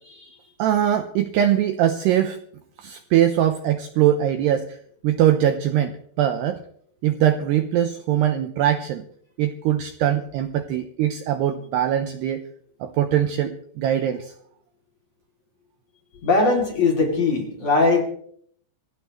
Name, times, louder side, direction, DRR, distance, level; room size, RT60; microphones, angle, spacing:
voice 1, 0.6-2.4 2.8-4.8 5.0-6.6 7.0-9.0 9.4-12.4 12.8-14.3, right 11 dB, 80° right, 8 dB, 2.5 m, -22 dB
voice 2, 16.2-18.0, left 3 dB, 40° left, 1 dB, 3.4 m, -20 dB
25.0 x 16.0 x 3.2 m, 0.63 s
omnidirectional pair, 5.8 m